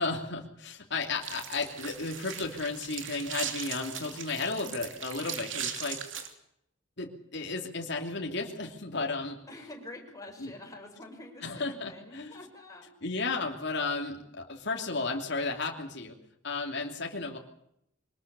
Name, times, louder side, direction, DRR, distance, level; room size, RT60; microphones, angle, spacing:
voice 1, 0.0-6.0 7.0-9.4 10.4-10.5 11.4-12.3 13.0-16.2 16.4-17.4, left 3 dB, 60° left, 2 dB, 2.8 m, -33 dB
sound 1, 1.2-6.3, right 8 dB, 70° right, 2.8 m, -39 dB
voice 2, 9.4-12.9, left 2 dB, 20° left, 1 dB, 6.1 m, -47 dB
24.0 x 20.0 x 6.9 m, 0.76 s
head